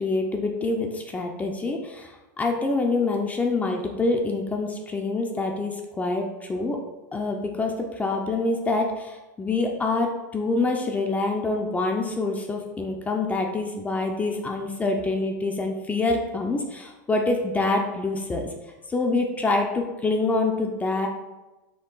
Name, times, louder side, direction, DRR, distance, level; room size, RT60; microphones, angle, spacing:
voice 1, 0.0-6.8 7.1-18.5 18.9-21.1, left 3 dB, 15° left, 3 dB, 0.4 m, -26 dB
4.5 x 2.6 x 3.8 m, 1.1 s
supercardioid pair, 130°, 10 cm